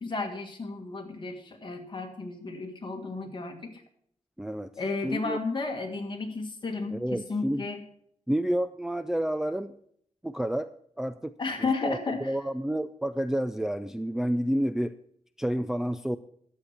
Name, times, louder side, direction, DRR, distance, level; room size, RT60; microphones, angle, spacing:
voice 1, 0.0-3.7 4.8-7.8 11.4-12.4, left 3 dB, 40° left, 3 dB, 1.7 m, -33 dB
voice 2, 4.4-4.7 5.0-5.4 6.9-7.6 8.3-9.7 10.2-10.7 11.0-11.3 11.8-14.9 15.4-16.2, equal, 5° right, 10 dB, 0.3 m, -29 dB
11.5 x 7.9 x 5.8 m, 0.65 s
wide cardioid pair, 150°, 12 cm